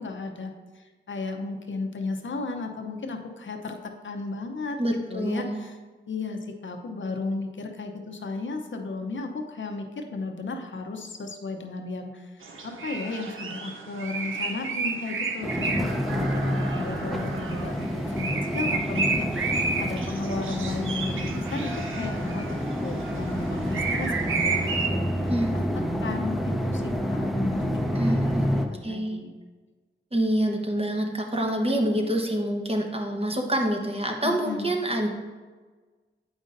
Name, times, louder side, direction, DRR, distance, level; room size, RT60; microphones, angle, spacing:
voice 1, 0.0-4.8 5.1-5.8 6.1-25.7 26.0-29.3 34.2-34.7, left 3 dB, 70° left, 4 dB, 0.7 m, -34 dB
voice 2, 4.8-5.6 25.3-25.5 27.9-28.5 28.8-29.2 30.1-35.1, right 1 dB, 30° right, 1 dB, 1.0 m, -26 dB
sound 1, 12.4-24.9, right 4 dB, 85° right, 0.6 m, -32 dB
sound 2, 15.4-28.7, equal, ahead, 0.7 m, -28 dB
8.0 x 5.3 x 2.6 m, 1.4 s
cardioid pair, 45°, 20 cm